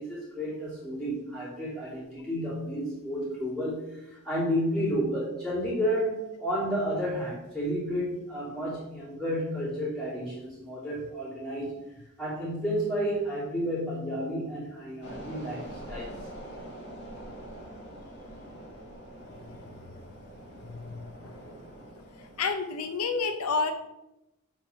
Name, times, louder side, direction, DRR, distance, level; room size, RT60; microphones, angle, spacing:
voice 1, 0.0-11.7 12.2-16.2, equal, ahead, -10 dB, 3.0 m, -31 dB
sound 1, 15.0-22.5, right 1 dB, 50° left, 1.9 m, -44 dB
voice 2, 20.7-21.0 21.2-21.3 22.4-23.7, left 4 dB, 80° left, 7 dB, 0.7 m, -29 dB
7.7 x 4.6 x 5.6 m, 0.91 s
head